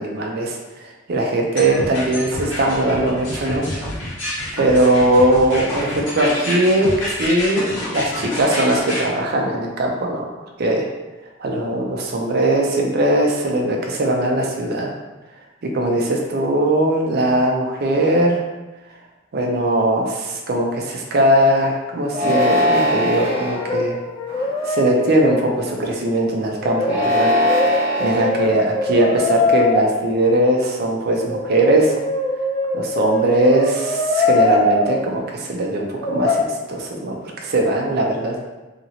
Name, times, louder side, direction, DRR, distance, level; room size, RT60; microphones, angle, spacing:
voice 1, 0.0-3.7 4.5-10.3 10.6-10.8 11.4-14.9 15.6-18.4 19.3-24.0 24.6-31.9 32.7-36.4 36.7-38.4, right 1 dB, 55° right, 1 dB, 0.5 m, -20 dB
sound 1, 1.6-9.0, left 1 dB, 75° left, 1.3 m, -28 dB
Brass instrument, 22.1-22.8 23.1-25.6 26.6-29.8 31.2-35.0 36.0-36.5, left 2 dB, 25° left, 0.3 m, -22 dB
sound 2, 22.1-23.6 24.3-24.8 26.8-28.3, left 1 dB, 40° right, 1.2 m, -20 dB
2.8 x 2.8 x 2.7 m, 1.1 s
head